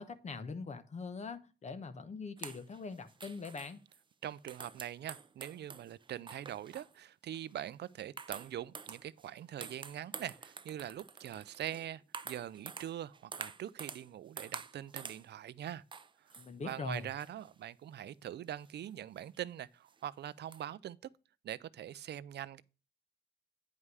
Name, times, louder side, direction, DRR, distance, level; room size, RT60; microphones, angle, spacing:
voice 1, 0.0-3.8 16.4-17.1, left 4 dB, 40° left, 1.0 m, -42 dB
sound 1, 2.4-7.0 7.3-7.6 8.2-9.3 9.6-14.1 14.4-15.3 15.9-17.5 18.6-18.7 19.3-19.4 19.9-20.0 20.5-20.6, right 5 dB, 30° right, 0.5 m, -48 dB
voice 2, 4.2-15.8 16.2-16.3 16.6-21.0 21.4-22.6, right 11 dB, 80° right, 0.5 m, -43 dB
9.5 x 5.5 x 4.7 m
wide cardioid pair, 140°, 17 cm